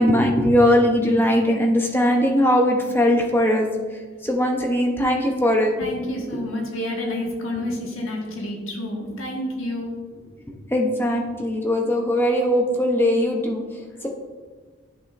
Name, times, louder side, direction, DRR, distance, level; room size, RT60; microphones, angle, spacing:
voice 1, 0.0-5.7 10.7-14.1, left 1 dB, 10° left, 1 dB, 0.8 m, -20 dB
voice 2, 5.8-10.0, left 1 dB, 90° left, -1 dB, 1.6 m, -29 dB
11.0 x 6.3 x 2.6 m, 1.4 s
head